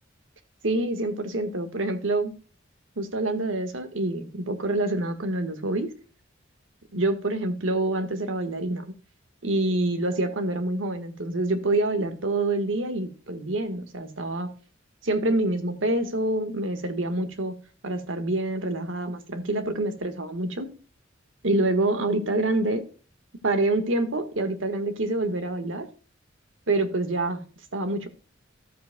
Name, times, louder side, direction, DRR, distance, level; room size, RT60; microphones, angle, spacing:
voice 1, 0.6-2.3 3.0-5.9 6.9-8.8 9.4-14.5 15.0-17.6 17.8-20.7 21.4-22.8 23.4-25.9 26.7-27.4 27.7-28.1, right 2 dB, 85° right, 1.6 m, -26 dB
13.5 x 7.7 x 2.3 m
head